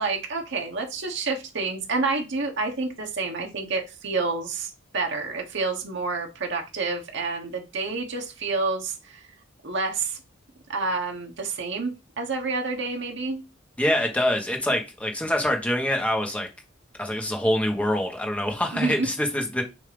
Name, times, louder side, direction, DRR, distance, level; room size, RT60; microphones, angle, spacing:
voice 1, 0.0-9.2 9.6-10.2 10.7-13.4 18.7-19.1, right 3 dB, 65° right, 1.3 m, -29 dB
voice 2, 13.8-16.5 17.0-19.6, left 1 dB, 5° left, 1.3 m, -25 dB
6.7 x 2.8 x 5.2 m
head